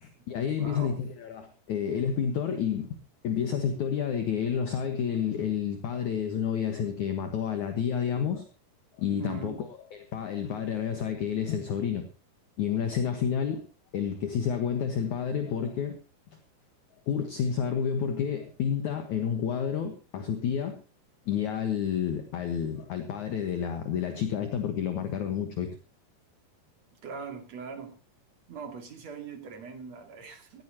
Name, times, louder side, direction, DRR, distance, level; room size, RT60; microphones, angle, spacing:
voice 1, 0.0-3.0 3.2-8.5 9.0-12.1 12.6-13.7 13.9-16.0 17.1-20.8 21.3-25.7, left 8 dB, 60° left, 7 dB, 2.5 m, -30 dB
voice 2, 0.6-1.0 9.1-9.6 26.9-28.0 28.5-30.6, right 5 dB, 45° right, 5 dB, 3.4 m, -41 dB
18.0 x 16.0 x 3.0 m, 0.31 s
omnidirectional pair, 4.6 m